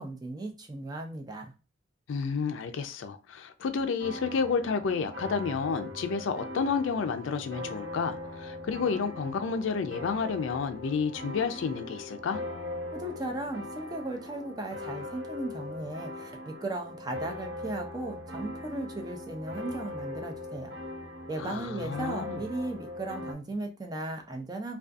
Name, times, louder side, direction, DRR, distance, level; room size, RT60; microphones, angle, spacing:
voice 1, 0.0-1.5 12.9-20.7 21.3-24.8, right 2 dB, 20° right, 0.3 m, -36 dB
voice 2, 2.1-12.4 21.4-22.4, left 5 dB, 80° left, 0.3 m, -30 dB
sound 1, 4.0-23.3, left 1 dB, 75° right, 0.9 m, -40 dB
2.4 x 2.3 x 2.4 m
head